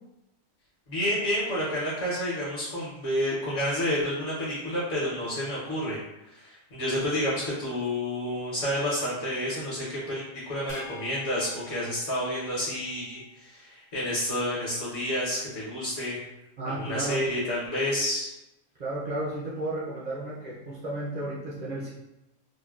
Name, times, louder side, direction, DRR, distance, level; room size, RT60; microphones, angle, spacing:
voice 1, 0.9-6.0 6.3-16.2 16.7-18.3, left 1 dB, 60° left, -8 dB, 1.2 m, -29 dB
sound 1, 10.7-13.3, left 3 dB, 85° left, 1.2 m, -48 dB
voice 2, 16.6-17.3 18.8-21.9, right 2 dB, 80° right, -7 dB, 0.3 m, -33 dB
3.5 x 2.1 x 2.3 m, 0.94 s
omnidirectional pair, 1.5 m